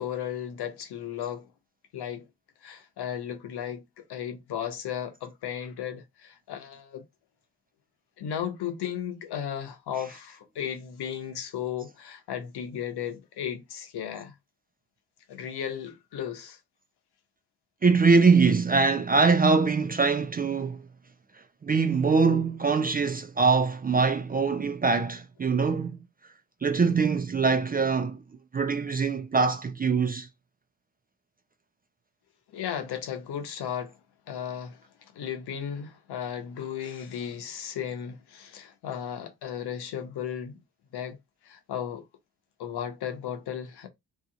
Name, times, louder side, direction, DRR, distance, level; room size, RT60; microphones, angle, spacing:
voice 1, 0.0-1.5 1.9-2.3 2.6-7.0 8.2-14.3 15.3-16.6 32.5-34.0 34.3-34.8 35.1-40.6 40.9-41.2 41.4-42.1 42.6-43.9, left 9 dB, 70° left, 0.9 m, -35 dB
voice 2, 17.8-20.8 21.6-26.0 26.6-28.2 28.5-30.3, right 4 dB, 25° right, 0.4 m, -23 dB
2.8 x 2.4 x 3.8 m
supercardioid pair, 60°, 41 cm